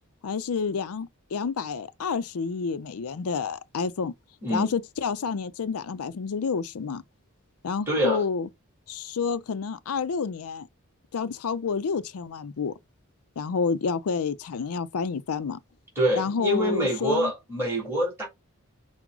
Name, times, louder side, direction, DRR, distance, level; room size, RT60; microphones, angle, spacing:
voice 1, 0.2-4.1 4.5-7.0 7.6-8.5 8.9-10.7 11.1-12.7 13.4-15.6 16.2-17.3, left 5 dB, 80° left, 0.5 m, -29 dB
voice 2, 7.9-8.2 16.0-18.3, right 1 dB, 10° right, 2.3 m, -25 dB
5.9 x 2.1 x 3.7 m
head